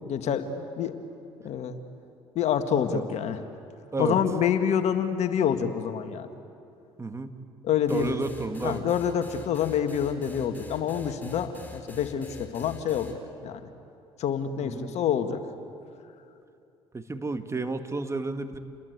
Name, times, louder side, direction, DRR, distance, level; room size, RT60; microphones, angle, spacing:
voice 1, 0.0-0.9 1.4-1.8 2.4-3.4 4.0-6.3 7.6-8.2 8.6-13.7 14.2-15.4, left 8 dB, 60° left, 8 dB, 1.9 m, -27 dB
voice 2, 7.0-7.4 7.9-8.8 14.6-14.9 16.9-18.6, right 3 dB, 20° right, 8 dB, 2.0 m, -31 dB
sound 1, 7.9-13.1, left 2 dB, 15° left, 4.5 m, -44 dB
29.5 x 21.5 x 8.2 m, 2.6 s
hypercardioid pair, 65°, 13 cm